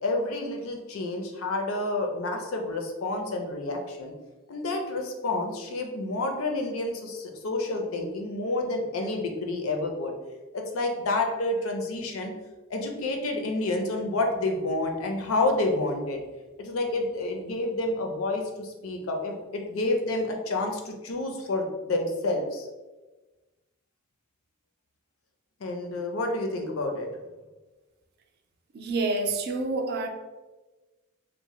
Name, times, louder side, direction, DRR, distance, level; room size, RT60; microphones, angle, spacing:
voice 1, 0.0-4.1 4.5-10.2 10.5-12.3 12.7-16.2 16.6-22.7 25.6-27.1, left 2 dB, 80° left, 3 dB, 0.5 m, -29 dB
voice 2, 28.7-30.1, right 3 dB, 50° right, 4 dB, 0.4 m, -28 dB
2.7 x 2.1 x 3.0 m, 1.2 s
head